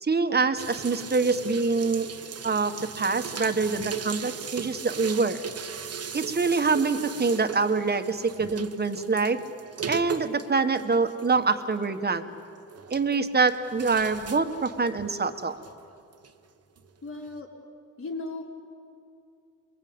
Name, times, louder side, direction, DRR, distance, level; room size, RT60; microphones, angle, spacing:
voice 1, 0.0-2.1 2.4-5.5 6.1-9.4 9.9-12.3 12.9-15.6, right 4 dB, 30° right, 9 dB, 1.6 m, -25 dB
sound 1, 0.6-16.3 16.8-16.9 17.2-17.4, right 6 dB, 50° right, 1.4 m, -38 dB
voice 2, 17.0-17.5 18.0-18.4, left 3 dB, 40° left, -1 dB, 4.9 m, -35 dB
29.0 x 22.0 x 8.9 m, 2.5 s
cardioid pair, 85°, 32 cm